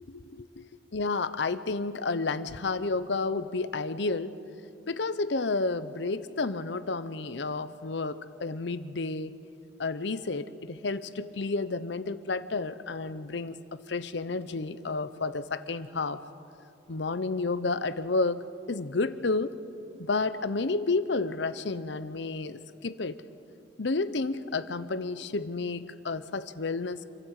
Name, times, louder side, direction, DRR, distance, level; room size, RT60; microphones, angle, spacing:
voice 1, 0.1-4.4 4.9-9.3 9.8-16.2 16.9-19.6 20.0-23.2 23.8-27.0, left 3 dB, 65° left, 13 dB, 0.7 m, -31 dB
27.0 x 12.5 x 8.2 m, 2.6 s
head